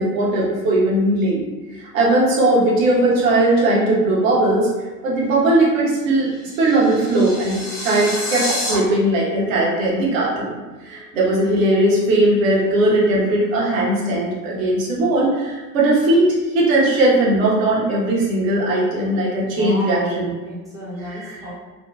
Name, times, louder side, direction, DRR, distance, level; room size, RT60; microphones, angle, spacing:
voice 1, 0.0-1.4 1.9-4.7 5.0-6.3 6.6-10.5 10.8-16.3 16.5-20.3 21.0-21.5, right 1 dB, 55° right, -4 dB, 0.9 m, -18 dB
sound 1, 6.1-8.8, left 1 dB, 30° left, 0.8 m, -28 dB
voice 2, 19.4-21.5, right 1 dB, 5° right, -8 dB, 0.6 m, -32 dB
2.8 x 2.2 x 2.2 m, 1.3 s
figure-of-eight pair, 80°, 49 cm